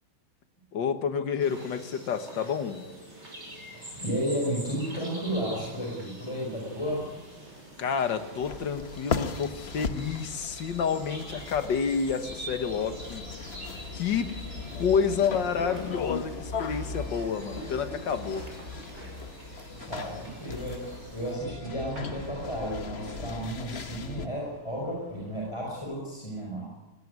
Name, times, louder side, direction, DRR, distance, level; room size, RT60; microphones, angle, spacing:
voice 1, 0.7-2.9 7.8-13.2 13.5-13.6 13.9-14.3 14.8-18.5, left 6 dB, 60° left, 9 dB, 2.0 m, -29 dB
sound 1, 1.4-21.4, right 1 dB, 30° right, 6.6 m, -46 dB
voice 2, 3.7-7.1 19.7-26.8, equal, 15° left, -3 dB, 5.3 m, -33 dB
sound 2, 6.4-25.9, right 1 dB, 70° right, 5.1 m, -50 dB
sound 3, 8.4-24.3, left 5 dB, 40° left, 1.0 m, -38 dB
20.5 x 17.0 x 9.5 m, 1.1 s
omnidirectional pair, 2.3 m